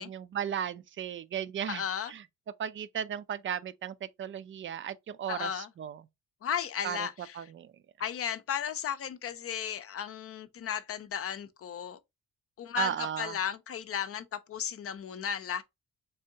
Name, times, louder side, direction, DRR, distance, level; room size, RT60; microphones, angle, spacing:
voice 1, 0.0-1.8 2.1-2.2 2.6-6.0 6.8-7.1 7.4-7.7 12.8-13.4, right 9 dB, 40° right, 0.4 m, -35 dB
voice 2, 1.7-2.1 5.3-5.7 6.4-7.5 8.0-12.0 12.6-15.6, left 8 dB, 50° left, 0.5 m, -35 dB
3.6 x 3.4 x 2.7 m
cardioid pair, 90°, 30 cm